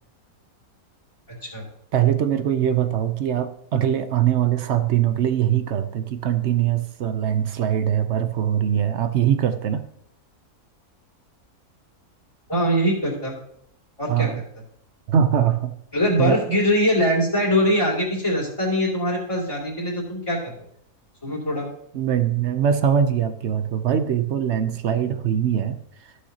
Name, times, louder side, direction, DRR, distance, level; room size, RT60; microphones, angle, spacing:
voice 1, 1.9-9.8 14.1-14.4 15.1-15.7 16.2-16.4 21.9-25.8, right 9 dB, 60° right, 10 dB, 0.8 m, -22 dB
voice 2, 12.5-13.3 14.0-14.3 15.9-20.5 21.2-21.7, equal, 20° left, -10 dB, 2.6 m, -22 dB
14.5 x 6.4 x 2.8 m, 0.70 s
omnidirectional pair, 1.5 m